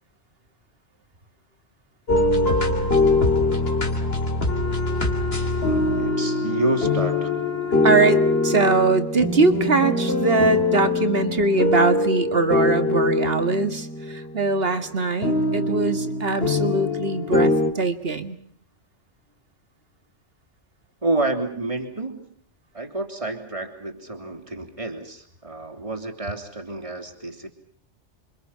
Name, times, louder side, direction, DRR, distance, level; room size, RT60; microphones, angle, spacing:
sound 1, 2.1-14.7 15.2-17.7, left 2 dB, 55° left, 3.4 m, -23 dB
Wind instrument woodwind instrument, 4.5-9.1, left 7 dB, 90° left, 2.0 m, -31 dB
voice 1, 5.6-7.3 21.0-22.3 22.7-27.5, right 2 dB, 25° right, 4 dB, 3.4 m, -29 dB
voice 2, 7.8-13.9 14.3-18.4, right 3 dB, 55° right, 9 dB, 2.2 m, -22 dB
29.0 x 25.0 x 5.8 m, 0.62 s
omnidirectional pair, 1.2 m